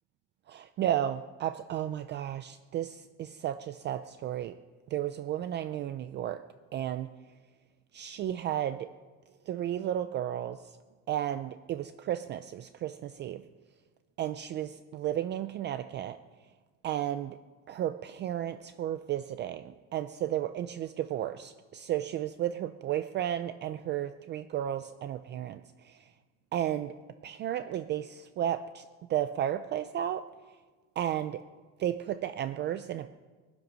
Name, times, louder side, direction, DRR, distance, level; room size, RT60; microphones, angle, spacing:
voice 1, 0.5-4.6 4.9-6.4 6.7-7.1 7.9-8.9 9.5-10.6 11.1-13.4 14.2-16.2 16.8-17.4 17.7-26.0 26.5-26.9 27.2-28.8 29.1-30.2 31.0-31.4 31.8-33.1, right 11 dB, 35° right, 11 dB, 0.4 m, -33 dB
21.5 x 10.5 x 6.2 m, 1.4 s
cardioid pair, 180°, 33 cm